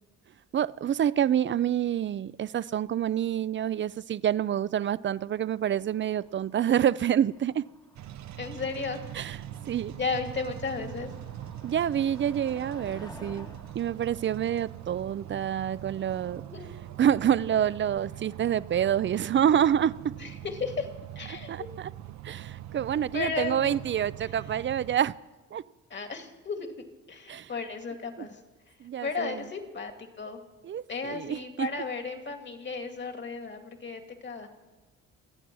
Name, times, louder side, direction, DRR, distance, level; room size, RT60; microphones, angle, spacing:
voice 1, 0.5-7.6 9.1-9.4 9.7-9.9 11.6-16.4 17.0-20.1 21.5-21.9 22.2-25.2 25.5-25.6 27.3-27.5 28.8-29.4 30.6-31.7, right 9 dB, 40° right, 0.5 m, -27 dB
Motor vehicle (road), 5.3-15.6, left 1 dB, 15° left, 1.4 m, -53 dB
sound 1, 8.0-25.0, right 12 dB, 70° right, 0.8 m, -42 dB
voice 2, 8.4-9.0 9.9-11.1 16.4-16.7 20.2-20.9 21.2-21.7 23.1-23.8 24.2-24.3 25.9-26.7 27.1-28.4 29.0-30.4 30.9-34.5, left 4 dB, 35° left, 2.5 m, -34 dB
26.0 x 8.8 x 6.2 m
cardioid pair, 90°, 30 cm